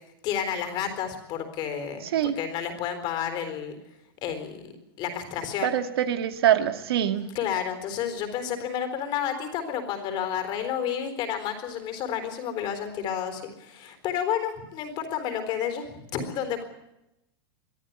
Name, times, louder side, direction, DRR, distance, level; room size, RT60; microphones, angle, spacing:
voice 1, 0.2-3.8 4.2-4.7 5.0-5.8 7.3-16.6, left 8 dB, 35° left, 8 dB, 4.0 m, -31 dB
voice 2, 5.6-7.3, right 10 dB, 80° right, 8 dB, 2.2 m, -24 dB
23.5 x 14.0 x 9.5 m, 0.89 s
supercardioid pair, 150°, 13 cm